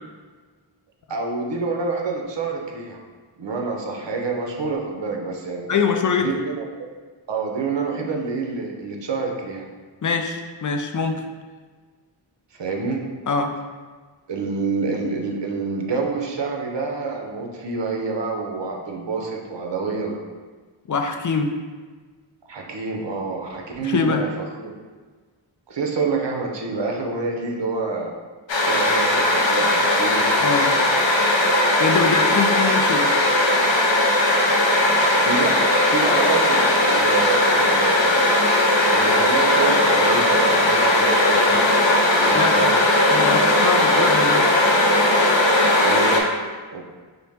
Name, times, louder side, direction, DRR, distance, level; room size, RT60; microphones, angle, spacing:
voice 1, 1.1-3.0 3.4-5.7 6.2-6.6 7.3-9.7 12.6-13.0 14.3-20.2 22.5-24.8 25.7-28.1 28.6-30.3 35.2-38.2 38.9-41.6 42.1-42.8 45.8-46.3 46.7-46.8, right 4 dB, 60° right, 1 dB, 0.8 m, -27 dB
voice 2, 5.7-6.3 10.0-11.2 13.3-13.5 20.9-21.5 23.8-24.3 30.4-30.7 31.8-33.1 42.3-42.6 43.1-44.5, left 5 dB, 40° left, 5 dB, 0.4 m, -23 dB
sound 1, 28.5-46.2, left 1 dB, 65° left, 0.8 m, -18 dB
5.7 x 2.1 x 3.4 m, 1.4 s
wide cardioid pair, 65°, 48 cm